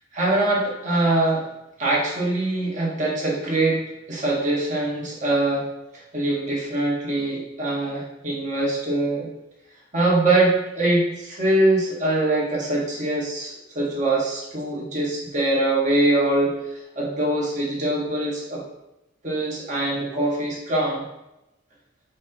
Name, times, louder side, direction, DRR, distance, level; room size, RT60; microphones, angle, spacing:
voice 1, 0.1-1.5 1.8-3.8 4.1-5.7 5.9-9.3 9.9-18.6 19.2-21.0, right 2 dB, 40° right, -4 dB, 1.9 m, -23 dB
7.7 x 3.0 x 5.4 m, 0.91 s
head